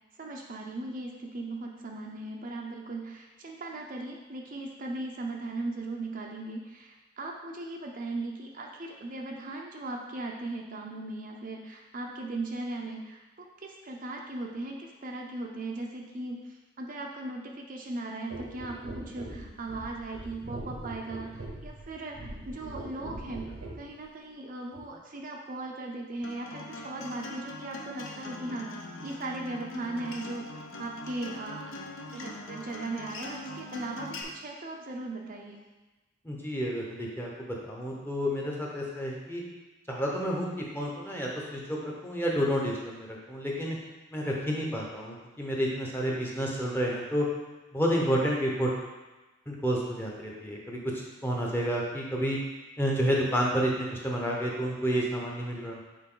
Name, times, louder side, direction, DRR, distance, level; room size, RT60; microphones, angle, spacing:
voice 1, 0.2-23.5 23.8-28.7 29.0-30.5 30.8-31.7 32.1-35.6, right 2 dB, 40° right, 0 dB, 0.6 m, -38 dB
sound 1, 18.3-23.9 24.7-24.9, right 1 dB, 85° right, 1.0 m, -42 dB
Acoustic guitar, 26.2-34.2, left 1 dB, 65° left, 0.8 m, -42 dB
voice 2, 36.2-39.4 39.9-40.5 40.7-43.8 44.1-47.3 47.7-48.7 49.5-50.8 51.2-52.4 52.8-55.8, equal, 10° left, -3 dB, 0.9 m, -30 dB
6.5 x 4.2 x 3.8 m, 1.1 s
head